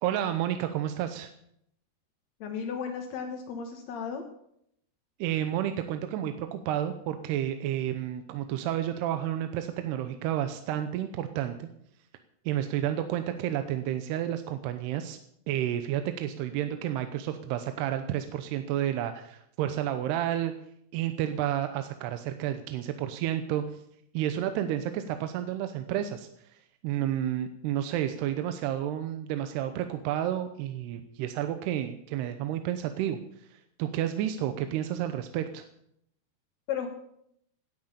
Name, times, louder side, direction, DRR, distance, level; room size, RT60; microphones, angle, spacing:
voice 1, 0.0-1.3 5.2-11.7 12.5-15.2 15.5-20.5 20.9-23.6 24.1-26.3 26.8-33.2 33.5-35.6, right 11 dB, 85° right, 8 dB, 2.8 m, -31 dB
voice 2, 2.4-4.2 36.7-36.9, left 7 dB, 60° left, 3 dB, 1.9 m, -34 dB
17.5 x 9.6 x 6.8 m, 0.74 s
omnidirectional pair, 4.8 m